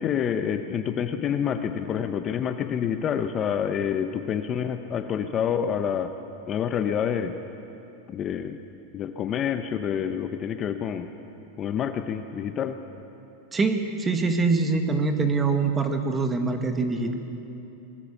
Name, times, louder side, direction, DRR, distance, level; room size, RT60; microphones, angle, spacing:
voice 1, 0.0-6.1 6.5-7.4 8.1-8.6 8.9-11.1 11.6-12.8, left 8 dB, 25° left, 8 dB, 0.8 m, -27 dB
voice 2, 13.5-17.1, right 4 dB, 15° right, 6 dB, 1.7 m, -24 dB
24.0 x 21.5 x 7.2 m, 2.9 s
supercardioid pair, 155°, 0 cm